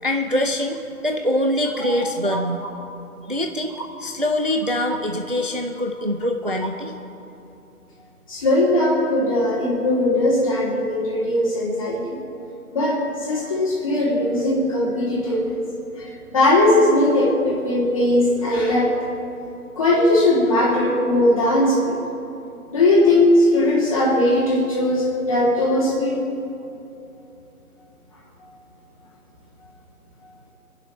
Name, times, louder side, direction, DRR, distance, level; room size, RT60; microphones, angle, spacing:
voice 1, 0.0-2.6 3.3-6.9, left 1 dB, 35° right, 4 dB, 0.5 m, -24 dB
voice 2, 8.3-12.2 12.7-15.5 16.0-18.9 19.7-22.0 22.7-26.1, left 1 dB, 20° left, -6 dB, 2.9 m, -19 dB
28.5 x 11.0 x 3.1 m, 2.8 s
figure-of-eight pair, 170°, 46 cm